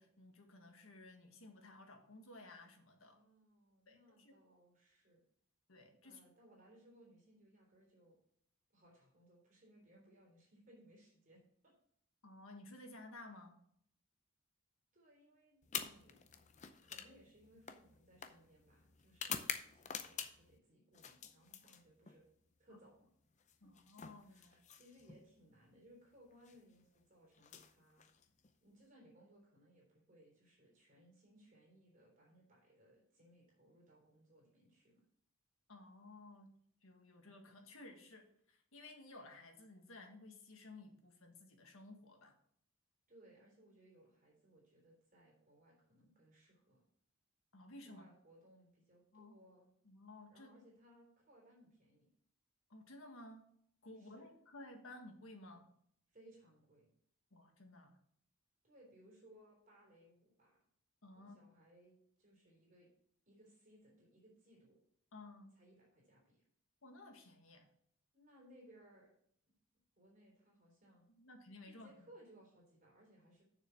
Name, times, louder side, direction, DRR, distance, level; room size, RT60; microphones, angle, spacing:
voice 1, 0.0-3.2 3.9-4.3 5.7-6.2 12.2-13.6 22.7-22.8 23.6-24.6 35.7-36.5 36.8-42.3 47.5-48.1 49.1-49.4 49.8-50.6 52.7-53.5 53.8-55.7 57.3-58.0 61.0-61.4 65.1-65.6 66.8-67.7 71.2-71.9, left 2 dB, 80° left, 3 dB, 1.7 m, -56 dB
voice 2, 3.0-5.2 6.0-8.2 8.7-11.7 14.9-16.3 16.8-22.2 22.6-23.1 23.6-23.7 24.2-28.1 28.6-35.0 43.1-46.8 47.9-49.7 50.3-52.1 54.0-54.3 56.1-56.9 58.6-60.6 61.1-62.9 63.3-64.8 65.6-66.4 68.1-69.1 70.0-71.1 71.6-73.4, right 1 dB, 40° right, -3 dB, 3.7 m, -65 dB
sound 1, 15.6-20.6 20.9-22.2 23.4-25.2 26.3-26.6 27.3-28.5, left 7 dB, 35° left, 0.6 m, -47 dB
7.0 x 6.7 x 5.9 m, 0.66 s
head